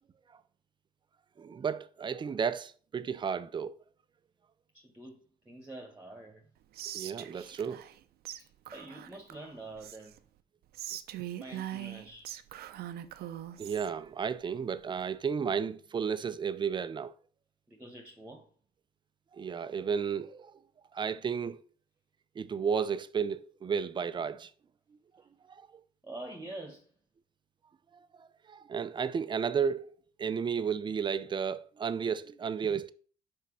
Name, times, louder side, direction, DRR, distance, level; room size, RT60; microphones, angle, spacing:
voice 1, 1.4-3.8 6.9-7.8 13.6-17.1 19.3-20.5 20.9-21.6 22.4-24.5 25.5-25.7 28.2-29.9 30.2-32.9, right 6 dB, 25° right, 0.5 m, -33 dB
voice 2, 4.7-6.5 8.4-10.1 11.3-12.3 17.7-18.5 26.0-26.9, right 2 dB, 10° right, 1.4 m, -46 dB
Whispering, 6.7-8.0 8.2-8.4 8.6-10.2 10.7-13.9, right 12 dB, 70° right, 0.6 m, -42 dB
5.9 x 4.5 x 6.1 m
cardioid pair, 110°, 17 cm